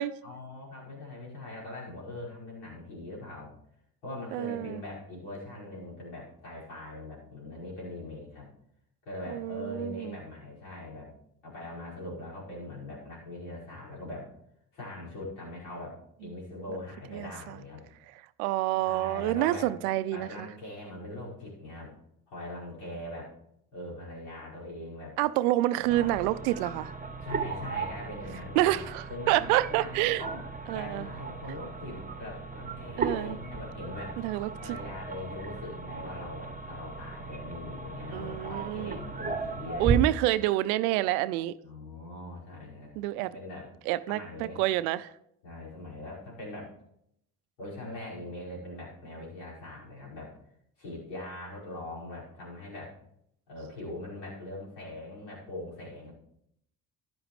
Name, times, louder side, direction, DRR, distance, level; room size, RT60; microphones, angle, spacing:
voice 1, 0.2-3.5 4.0-8.5 9.1-11.1 11.4-14.3 14.7-17.9 18.8-19.7 20.1-21.9 22.3-23.3 23.7-25.2 25.7-26.2 27.2-30.4 30.7-34.2 34.6-40.2 41.6-43.7 44.1-44.6 45.4-46.7 47.6-50.4 50.8-53.0 53.5-56.1, left 1 dB, 70° left, 5.5 m, -41 dB
voice 2, 4.3-4.8 9.3-10.1 17.1-17.3 18.4-20.5 25.2-26.9 28.6-30.2 30.7-31.1 33.0-33.4 34.2-34.5 38.1-39.0 39.8-41.5 43.0-43.3 43.9-44.2 44.6-45.1, right 16 dB, 75° right, 0.6 m, -27 dB
sound 1, 25.9-40.0, right 4 dB, 20° right, 1.3 m, -36 dB
13.5 x 10.0 x 3.2 m
hypercardioid pair, 55°, 45 cm